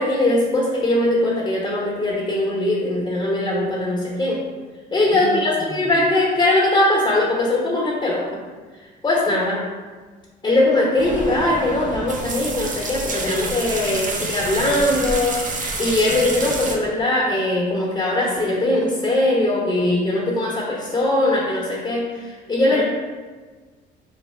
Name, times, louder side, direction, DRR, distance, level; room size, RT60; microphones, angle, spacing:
voice 1, 0.0-4.4 4.9-8.3 9.0-9.7 10.4-15.5 15.8-22.8, left 1 dB, 20° left, -4 dB, 1.0 m, -20 dB
voice 2, 4.9-5.9 22.7-22.8, equal, 80° right, -9 dB, 1.5 m, -32 dB
sound 1, 11.0-16.7, right 2 dB, 40° right, 0.8 m, -28 dB
3.2 x 2.6 x 4.3 m, 1.4 s
hypercardioid pair, 60°, 21 cm